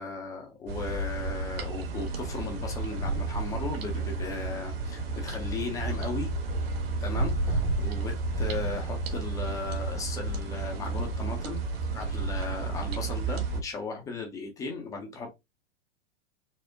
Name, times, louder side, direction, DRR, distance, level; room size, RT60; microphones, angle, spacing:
voice 1, 0.0-6.3 7.0-11.6 11.9-15.3, left 4 dB, 10° left, 0.3 m, -36 dB
sound 1, 0.7-13.6, right 3 dB, 50° right, 1.0 m, -31 dB
4.3 x 2.0 x 2.6 m
figure-of-eight pair, 100°, 37 cm